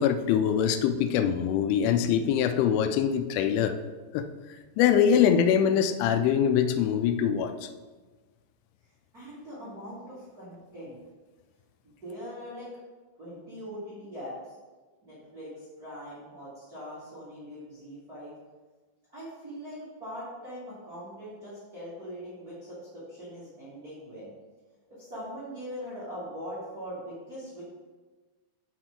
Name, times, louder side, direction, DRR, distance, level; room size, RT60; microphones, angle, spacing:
voice 1, 0.0-3.8 4.1-4.2 4.8-7.5, left 8 dB, 85° left, 9 dB, 3.0 m, -23 dB
voice 2, 9.1-11.0 11.8-12.7 13.2-14.3 15.0-18.3 19.1-24.3 24.9-27.6, equal, 35° right, -11 dB, 1.6 m, -41 dB
6.2 x 5.9 x 4.7 m, 1.3 s
omnidirectional pair, 5.5 m